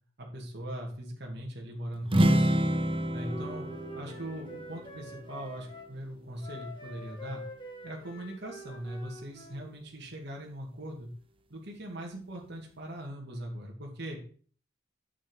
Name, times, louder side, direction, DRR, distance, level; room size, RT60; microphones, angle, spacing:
voice 1, 0.2-2.6 3.1-3.7 3.9-7.4 7.8-11.1 11.5-14.2, right 1 dB, 60° right, -1 dB, 2.5 m, -40 dB
sound 1, 2.0-5.8, right 1 dB, 30° right, 0.8 m, -28 dB
Wind instrument woodwind instrument, 2.8-5.9 6.4-9.6, equal, 25° left, 2.5 m, -46 dB
9.1 x 7.6 x 4.7 m, 0.43 s
head